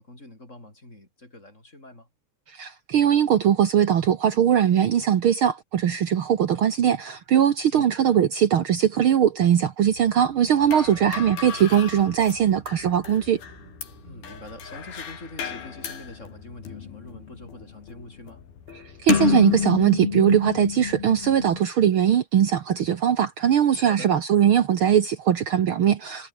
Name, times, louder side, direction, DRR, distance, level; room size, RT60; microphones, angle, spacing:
voice 1, 0.0-2.1 7.7-7.9 10.8-11.2 14.0-18.4 23.8-24.1, left 1 dB, 20° left, 8.3 m, -44 dB
voice 2, 2.5-13.4 18.7-26.3, right 9 dB, 70° right, 1.2 m, -20 dB
sound 1, 9.8-16.5, right 4 dB, 50° right, 7.8 m, -50 dB
sound 2, 10.6-21.6, left 7 dB, 80° left, 5.4 m, -30 dB
omnidirectional pair, 4.3 m